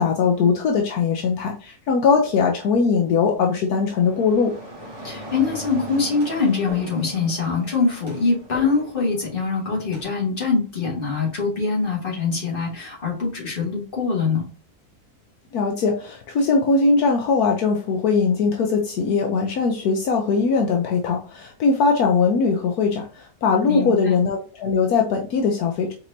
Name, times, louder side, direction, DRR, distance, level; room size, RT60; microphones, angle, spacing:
voice 1, 0.0-4.5 15.5-25.9, left 5 dB, 75° left, 2 dB, 1.2 m, -20 dB
sound 1, 3.4-10.0, equal, 15° right, 1.9 m, -38 dB
voice 2, 5.0-14.5 23.7-24.1, left 4 dB, 35° left, -3 dB, 2.0 m, -23 dB
4.4 x 4.2 x 2.7 m, 0.39 s
omnidirectional pair, 1.6 m